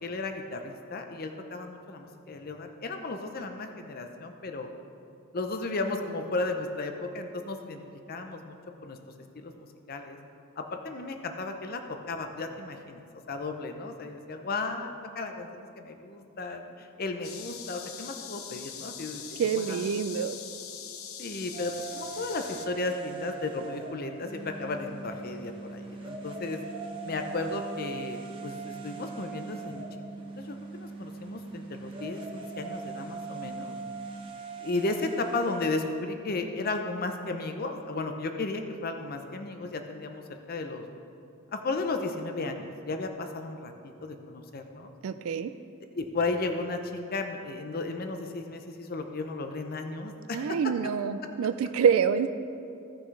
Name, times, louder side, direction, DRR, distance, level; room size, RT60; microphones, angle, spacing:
voice 1, 0.0-4.7 5.3-7.8 8.1-8.6 8.8-9.0 9.4-10.2 10.6-13.0 13.3-19.9 21.2-26.6 27.0-29.8 30.4-33.7 34.6-40.8 41.5-44.9 46.0-50.6, left 3 dB, 45° left, 5 dB, 0.6 m, -34 dB
sound 1, 17.2-22.7, left 8 dB, 85° left, 0.7 m, -42 dB
voice 2, 19.4-20.4 45.0-45.5 50.3-52.3, right 7 dB, 80° right, 10 dB, 0.3 m, -26 dB
sound 2, 21.5-36.0, right 5 dB, 25° right, 1.1 m, -43 dB
sound 3, 24.2-34.3, right 3 dB, 60° right, 1.2 m, -43 dB
16.5 x 6.2 x 3.2 m, 2.6 s
head